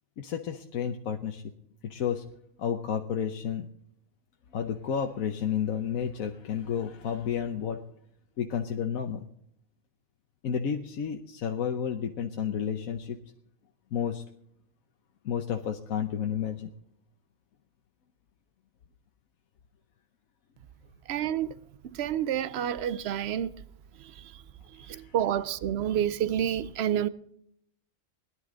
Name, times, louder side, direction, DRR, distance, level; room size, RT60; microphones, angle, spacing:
voice 1, 0.2-1.4 1.8-2.2 2.6-3.7 4.5-7.8 8.4-9.3 10.4-13.2 13.9-14.2 15.2-16.7 24.7-25.2, left 8 dB, 85° left, 1.3 m, -31 dB
voice 2, 21.1-21.5 22.0-23.5 25.1-27.1, right 10 dB, 60° right, 0.8 m, -28 dB
19.5 x 11.0 x 3.8 m
omnidirectional pair, 1.4 m